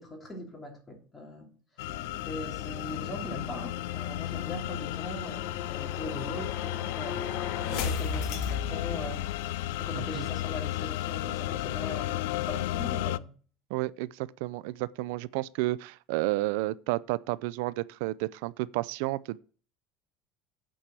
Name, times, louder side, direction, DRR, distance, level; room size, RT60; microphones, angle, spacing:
voice 1, 0.0-1.5 1.8-1.9 2.2-9.2 9.8-13.3, left 1 dB, 15° left, 2.7 m, -41 dB
sound 1, 1.8-13.2, left 15 dB, 85° left, 0.4 m, -34 dB
sound 2, 1.8-7.1, right 4 dB, 20° right, 2.8 m, -55 dB
sound 3, 2.9-9.6, left 6 dB, 60° left, 1.4 m, -37 dB
voice 2, 9.9-10.3 13.7-19.4, right 19 dB, 75° right, 0.3 m, -31 dB
8.7 x 4.7 x 7.5 m
cardioid pair, 155°, 0 cm